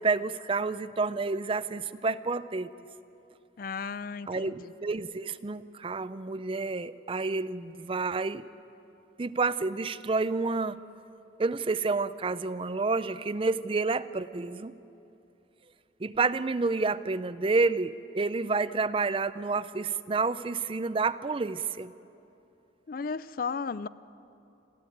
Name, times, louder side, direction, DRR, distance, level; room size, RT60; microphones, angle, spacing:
voice 1, 0.0-2.7 4.3-8.5 9.2-10.8 11.4-14.7 16.0-21.9, right 3 dB, 30° right, 0.5 m, -29 dB
voice 2, 3.6-4.5 22.9-23.9, left 5 dB, 50° left, 0.4 m, -34 dB
27.0 x 14.5 x 9.1 m
head